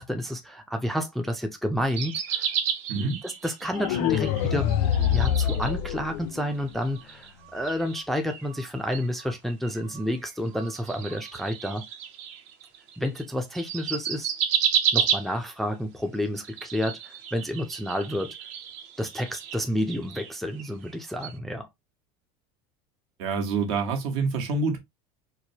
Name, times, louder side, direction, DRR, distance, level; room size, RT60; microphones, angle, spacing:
voice 1, 0.0-2.5 2.9-4.7 5.1-11.8 13.0-14.3 14.9-18.4 19.0-21.7, equal, ahead, 0.4 m, -30 dB
sound 1, 1.8-6.1 6.4-13.3 13.6-15.6 16.3-20.9 21.2-21.4, right 8 dB, 50° right, 0.8 m, -32 dB
voice 2, 2.9-3.2 23.2-24.8, right 4 dB, 70° right, 1.2 m, -26 dB
sound 2, 3.7-6.7, left 9 dB, 65° left, 0.5 m, -25 dB
4.5 x 2.1 x 2.7 m
cardioid pair, 150°, 15 cm